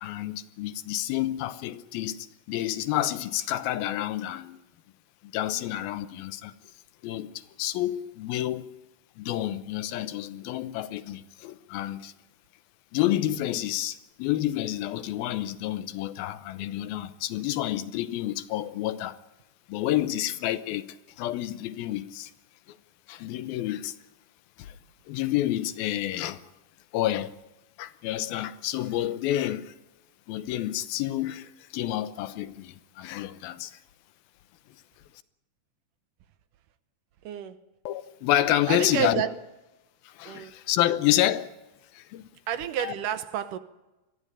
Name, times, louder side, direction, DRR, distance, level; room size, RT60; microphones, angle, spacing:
voice 1, 0.0-4.6 5.3-6.5 7.0-8.7 9.2-12.1 12.9-19.2 19.7-20.9 21.2-22.3 22.7-22.8 23.1-23.9 24.6-24.8 25.1-26.4 26.9-27.3 27.8-29.7 30.3-33.8 37.9-39.2 40.1-41.5 41.9-42.3 42.8-42.9, left 13 dB, 90° left, 2.8 m, -29 dB
voice 2, 37.3-37.6 38.7-39.3 40.3-40.5 42.5-43.6, right 10 dB, 70° right, 2.3 m, -29 dB
23.0 x 14.5 x 9.9 m
omnidirectional pair, 4.1 m